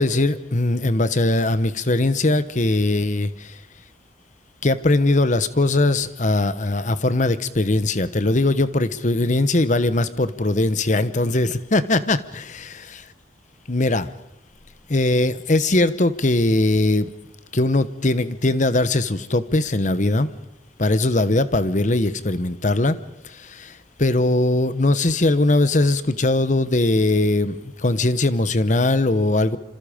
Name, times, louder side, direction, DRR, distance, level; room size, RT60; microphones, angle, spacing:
voice 1, 0.0-3.6 4.6-13.0 13.7-14.1 14.9-17.1 17.5-20.3 20.8-23.0 23.2-29.6, left 2 dB, 40° left, 13 dB, 1.1 m, -20 dB
27.0 x 26.5 x 5.1 m, 0.86 s
head